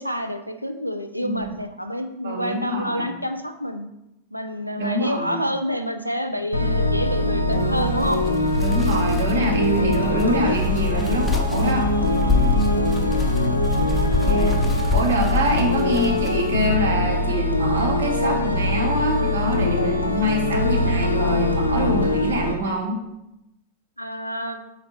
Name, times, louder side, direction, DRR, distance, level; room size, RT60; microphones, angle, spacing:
voice 1, 0.0-3.9 4.3-8.2 12.5-12.9 13.8-13.9 19.8-20.0 24.0-24.6, equal, 90° right, 6 dB, 0.4 m, -28 dB
voice 2, 2.2-3.1 4.8-5.4 8.6-11.9 14.2-23.0, equal, 65° right, 2 dB, 0.9 m, -25 dB
sound 1, 6.5-22.5, left 1 dB, 80° left, 0.4 m, -22 dB
sound 2, 7.4-16.7, left 5 dB, 5° left, 0.6 m, -27 dB
4.3 x 3.9 x 3.0 m, 0.87 s
figure-of-eight pair, 90°, 0 cm